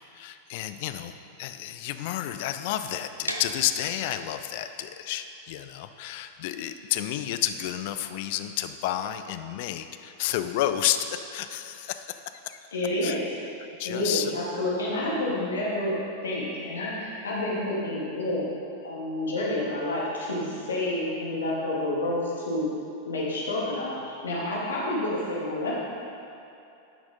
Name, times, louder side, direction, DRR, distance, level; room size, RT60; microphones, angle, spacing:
voice 1, 0.1-1.1 1.4-12.1 12.4-12.6 13.0-13.2 13.8-14.4, left 12 dB, 50° left, 9 dB, 0.4 m, -30 dB
sound 1, 3.2-9.1, right 1 dB, 85° right, 0.5 m, -41 dB
voice 2, 12.7-13.4 13.8-16.0 16.2-22.7 23.1-25.8, left 1 dB, 70° left, -6 dB, 2.0 m, -29 dB
10.5 x 6.0 x 3.7 m, 2.8 s
figure-of-eight pair, 90°, 0 cm